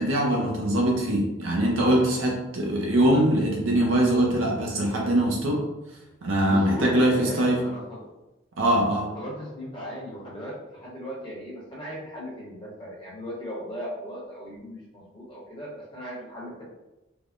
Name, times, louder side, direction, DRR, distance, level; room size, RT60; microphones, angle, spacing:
voice 1, 0.0-5.6 6.2-7.6 8.6-9.1, right 1 dB, 70° right, -2 dB, 0.6 m, -22 dB
voice 2, 6.5-8.0 9.1-16.6, equal, 25° left, -6 dB, 0.9 m, -37 dB
3.2 x 2.1 x 2.4 m, 1.0 s
head